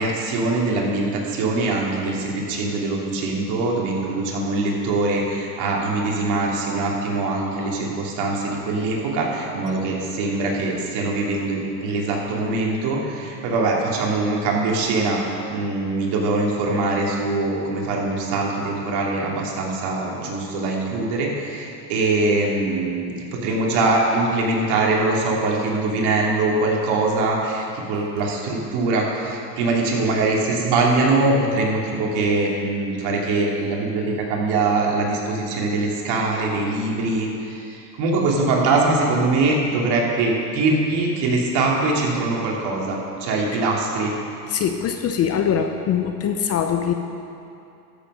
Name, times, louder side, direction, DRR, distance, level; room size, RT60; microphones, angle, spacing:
voice 1, 0.0-15.2 15.5-44.1, right 3 dB, 55° right, -2 dB, 2.8 m, -22 dB
voice 2, 44.5-46.9, left 8 dB, 30° left, 5 dB, 0.7 m, -22 dB
13.5 x 7.6 x 5.5 m, 2.6 s
supercardioid pair, 115°, 48 cm